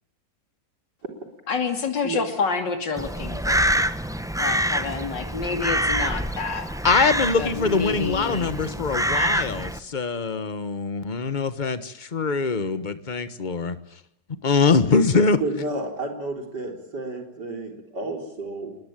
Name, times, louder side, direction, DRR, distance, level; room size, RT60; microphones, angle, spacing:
voice 1, 1.5-3.8 4.4-6.7 7.4-8.5, left 4 dB, 85° left, 6 dB, 3.3 m, -28 dB
Crow, 3.0-9.8, equal, 5° right, 0.6 m, -26 dB
voice 2, 6.8-13.8 14.4-15.4, left 4 dB, 30° left, 13 dB, 1.3 m, -23 dB
voice 3, 15.4-18.8, right 2 dB, 70° right, 4 dB, 4.6 m, -31 dB
25.5 x 20.5 x 9.1 m, 0.75 s
omnidirectional pair, 1.9 m